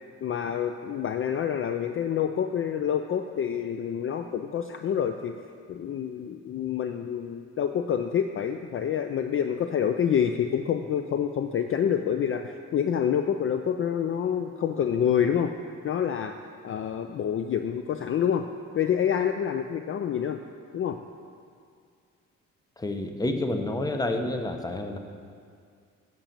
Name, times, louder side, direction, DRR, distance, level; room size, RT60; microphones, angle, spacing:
voice 1, 0.2-5.3 5.7-15.5 15.8-16.3 16.6-18.4 18.7-20.4 20.7-21.0, left 8 dB, 45° left, 7 dB, 0.4 m, -27 dB
voice 2, 22.8-25.0, left 2 dB, 15° left, 5 dB, 0.8 m, -29 dB
8.8 x 6.0 x 6.7 m, 2.2 s
cardioid pair, 90°, 30 cm